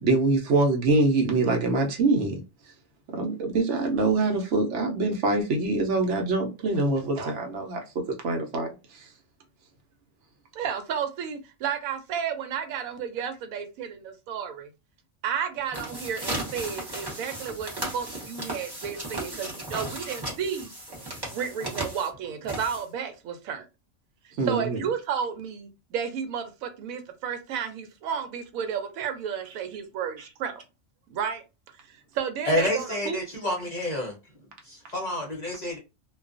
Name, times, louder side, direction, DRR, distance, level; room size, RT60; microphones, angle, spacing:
voice 1, 0.0-2.4 3.2-7.8 8.2-8.7 8.9-9.1 24.4-24.8, right 2 dB, 65° right, 0.9 m, -24 dB
voice 2, 10.5-14.7 15.2-20.7 21.3-23.7 24.5-30.6 31.1-31.4 31.9-33.2, right 7 dB, 90° right, 1.0 m, -32 dB
sound 1, 15.6-23.1, right 1 dB, 25° right, 0.6 m, -35 dB
voice 3, 32.4-34.1 34.6-35.8, left 1 dB, 45° left, 0.6 m, -28 dB
2.3 x 2.2 x 2.4 m
omnidirectional pair, 1.4 m